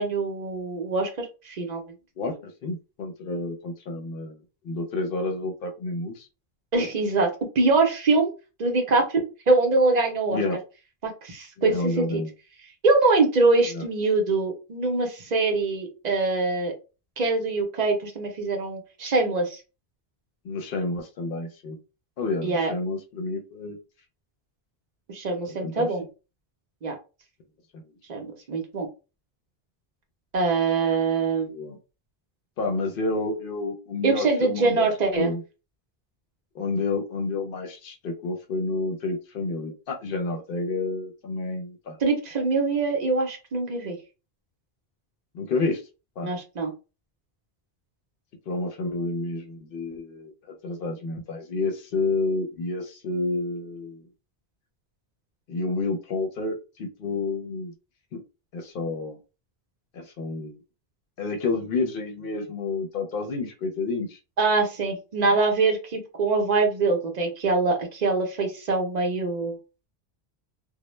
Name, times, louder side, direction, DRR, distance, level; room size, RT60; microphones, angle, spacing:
voice 1, 0.0-1.8 6.7-7.3 7.6-8.3 8.6-10.4 11.0-12.2 12.8-16.7 17.2-19.6 22.4-22.7 25.1-26.0 26.8-26.9 28.1-28.9 30.3-31.5 34.0-35.3 42.0-44.0 46.2-46.7 64.4-69.6, right 3 dB, 50° right, 3 dB, 0.7 m, -24 dB
voice 2, 2.6-4.4 4.6-6.3 10.3-10.6 11.6-12.3 13.7-13.8 20.4-21.8 22.2-23.8 25.6-25.9 31.5-31.8 32.6-35.4 36.5-42.0 45.3-45.8 46.2-46.3 48.5-50.3 50.6-54.0 55.5-57.7 58.1-58.2 58.5-59.2 59.9-60.6 61.2-64.2, left 3 dB, 65° left, 4 dB, 0.7 m, -29 dB
2.1 x 2.0 x 3.0 m, 0.31 s
omnidirectional pair, 1.0 m